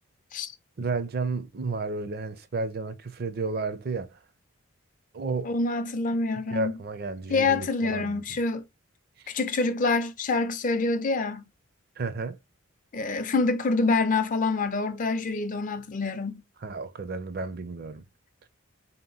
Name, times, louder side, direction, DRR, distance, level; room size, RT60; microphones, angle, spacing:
voice 1, 0.8-4.2 5.1-5.5 6.5-8.2 12.0-12.4 16.6-18.0, right 3 dB, 45° right, 0.5 m, -32 dB
voice 2, 5.4-6.7 7.3-8.6 9.3-11.4 12.9-16.4, left 3 dB, 40° left, 0.4 m, -26 dB
3.7 x 2.8 x 3.8 m
head